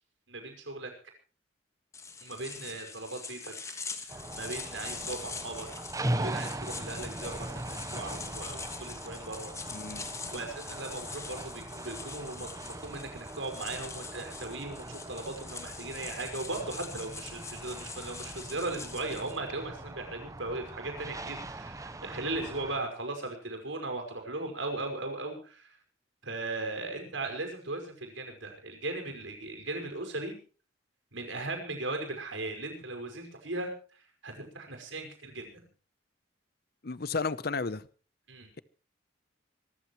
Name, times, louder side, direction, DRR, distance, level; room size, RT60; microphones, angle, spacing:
voice 1, 0.3-0.9 2.2-3.5 4.1-5.7 6.1-9.5 10.3-25.7 26.2-30.4 31.1-33.7 34.2-35.6 38.3-38.5, right 2 dB, 80° right, 4 dB, 5.5 m, -38 dB
sound 1, 1.9-19.4, left 4 dB, 15° left, 1.5 m, -43 dB
sound 2, 4.1-22.8, right 1 dB, 15° right, 0.9 m, -40 dB
voice 2, 9.7-10.1 36.8-37.9, left 4 dB, 50° left, 18 dB, 0.8 m, -33 dB
25.0 x 14.5 x 3.1 m, 0.39 s
head